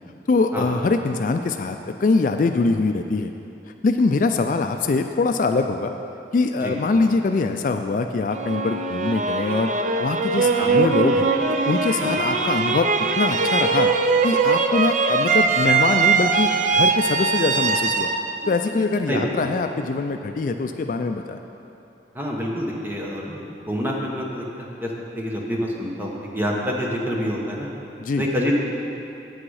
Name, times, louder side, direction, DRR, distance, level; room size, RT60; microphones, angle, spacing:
voice 1, 0.3-3.3 3.8-5.9 6.3-9.7 10.0-11.3 11.7-12.9 13.2-13.9 14.2-18.1 18.5-21.4 28.0-28.2, left 3 dB, 45° left, 6 dB, 0.3 m, -23 dB
sound 1, 8.3-19.3, right 4 dB, 45° right, 0.5 m, -21 dB
voice 2, 22.1-24.9 25.1-27.7 28.2-28.5, equal, 10° right, -2 dB, 1.0 m, -27 dB
8.7 x 8.6 x 4.8 m, 2.8 s
head